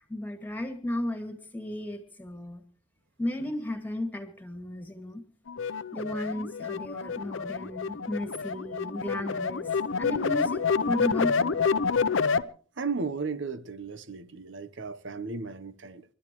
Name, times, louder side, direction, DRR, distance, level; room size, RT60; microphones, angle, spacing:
voice 1, 0.0-2.6 3.2-5.2 5.9-9.7 10.0-11.6, left 1 dB, 10° left, 2.2 m, -34 dB
sound 1, 5.5-12.4, left 5 dB, 85° left, 0.7 m, -28 dB
voice 2, 12.8-16.0, right 4 dB, 70° right, 1.0 m, -35 dB
28.5 x 12.5 x 3.1 m
head